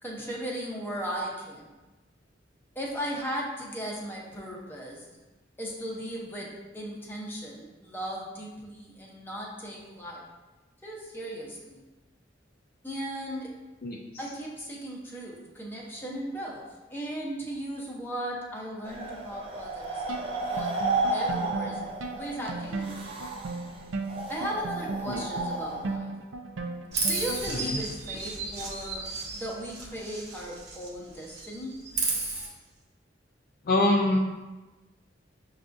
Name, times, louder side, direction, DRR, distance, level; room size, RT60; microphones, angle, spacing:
voice 1, 0.0-1.7 2.7-5.2 5.6-10.2 10.8-11.8 12.8-13.5 14.2-20.7 21.1-21.8 22.1-23.1 24.3-26.1 27.1-31.7, equal, 10° left, -3 dB, 0.7 m, -37 dB
sound 1, 18.8-26.0, right 2 dB, 30° right, 0.4 m, -33 dB
sound 2, 20.1-27.7, right 3 dB, 90° right, 0.4 m, -36 dB
Chirp tweet, 26.9-30.9 31.2-32.5, right 3 dB, 60° right, 0.8 m, -33 dB
voice 2, 27.5-27.8 33.6-34.2, left 2 dB, 50° left, 0 dB, 0.4 m, -25 dB
6.5 x 2.4 x 2.5 m, 1.1 s
head